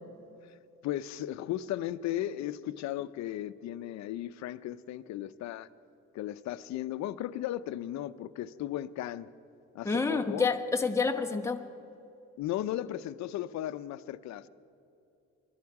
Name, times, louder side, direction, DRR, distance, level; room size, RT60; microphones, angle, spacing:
voice 1, 0.8-5.7 6.1-9.3 9.7-10.5 12.4-14.5, left 12 dB, 70° left, 13 dB, 0.6 m, -36 dB
voice 2, 9.8-11.6, left 4 dB, 10° left, 4 dB, 1.0 m, -28 dB
23.0 x 12.0 x 4.8 m, 2.7 s
cardioid pair, 130°, 29 cm